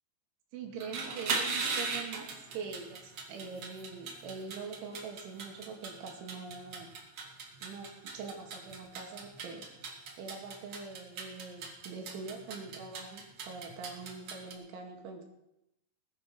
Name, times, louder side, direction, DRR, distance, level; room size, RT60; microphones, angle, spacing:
voice 1, 0.5-6.9 7.6-9.7 10.2-15.3, right 5 dB, 75° right, 2 dB, 4.4 m, -44 dB
sound 1, 0.7-14.5, right 4 dB, 50° right, 1.9 m, -39 dB
19.5 x 10.5 x 5.5 m, 0.86 s
omnidirectional pair, 5.6 m